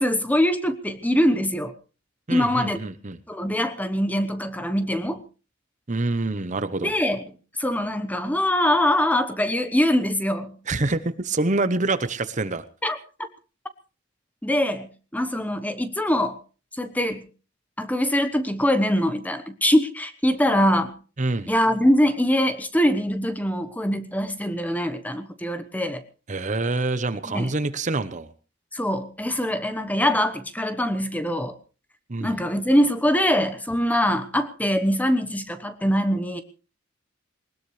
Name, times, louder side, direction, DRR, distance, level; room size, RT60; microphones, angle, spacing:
voice 1, 0.0-1.7 2.3-2.8 3.3-5.2 6.8-7.2 7.6-10.6 12.8-13.0 14.4-16.4 16.7-17.3 17.8-20.9 21.5-26.0 27.3-27.5 28.7-31.6 32.2-36.4, equal, 10° left, 10 dB, 1.0 m, -23 dB
voice 2, 2.3-3.2 5.9-6.9 10.7-12.6 21.2-21.5 26.3-28.3 32.1-32.3, right 2 dB, 40° right, 12 dB, 0.8 m, -26 dB
20.0 x 19.5 x 3.2 m, 0.36 s
head